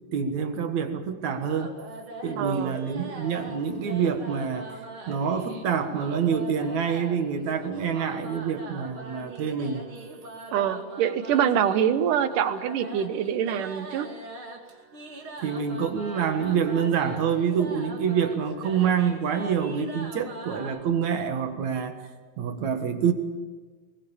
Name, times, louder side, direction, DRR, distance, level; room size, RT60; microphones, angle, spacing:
voice 1, 0.1-1.7 2.2-4.8 5.1-9.9 15.4-22.0 22.4-23.1, right 7 dB, 65° right, 7 dB, 2.8 m, -26 dB
sound 1, 1.2-20.8, right 2 dB, 45° right, 3.2 m, -42 dB
voice 2, 2.4-2.8 10.5-14.1, right 9 dB, 90° right, 11 dB, 2.7 m, -25 dB
23.0 x 21.0 x 7.2 m, 1.4 s
omnidirectional pair, 3.6 m